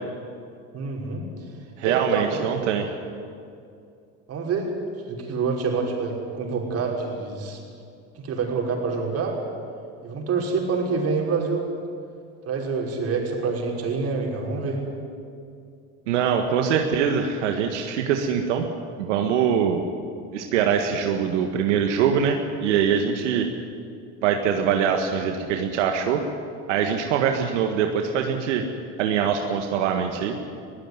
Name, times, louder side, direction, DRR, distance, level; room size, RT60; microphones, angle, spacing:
voice 1, 0.7-1.2 1.8-2.7 4.3-4.7 5.1-7.6 8.2-9.4 10.0-11.7 12.5-14.8, right 4 dB, 45° right, 0 dB, 5.6 m, -27 dB
voice 2, 1.8-2.8 16.1-18.6 19.0-19.8 20.3-23.5 24.2-26.2 26.7-28.6 29.0-30.4, right 7 dB, 85° right, 4 dB, 1.8 m, -23 dB
21.5 x 16.0 x 9.8 m, 2.4 s
supercardioid pair, 105°, 35 cm